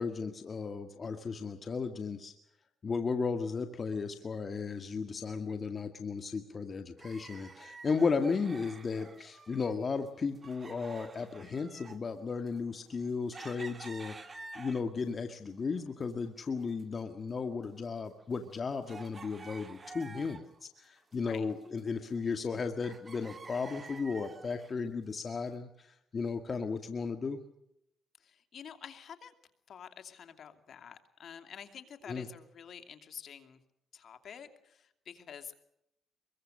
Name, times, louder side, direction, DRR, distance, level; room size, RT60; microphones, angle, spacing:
voice 1, 0.0-2.3 2.8-27.4 32.1-32.3, left 5 dB, 40° left, 7 dB, 1.7 m, -35 dB
sound 1, 7.0-9.8 10.0-15.1 15.6-16.5 16.7-16.8 17.4-20.6 21.0-22.5 22.8-24.8 25.4-25.5, right 3 dB, 30° right, 1.8 m, -50 dB
voice 2, 13.6-13.9 21.2-21.5 28.2-29.3 29.7-33.6 33.9-35.6, left 8 dB, 60° left, 7 dB, 2.6 m, -49 dB
24.5 x 22.5 x 6.5 m, 0.81 s
cardioid pair, 90°, 0 cm